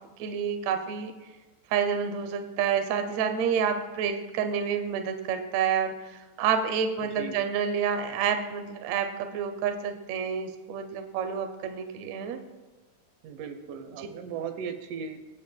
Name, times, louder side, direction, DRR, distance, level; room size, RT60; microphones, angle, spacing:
voice 1, 0.2-1.1 1.7-12.4, right 7 dB, 90° right, 7 dB, 1.5 m, -29 dB
voice 2, 13.2-15.2, right 6 dB, 70° right, 7 dB, 2.2 m, -37 dB
24.5 x 8.2 x 2.2 m, 1.2 s
omnidirectional pair, 4.2 m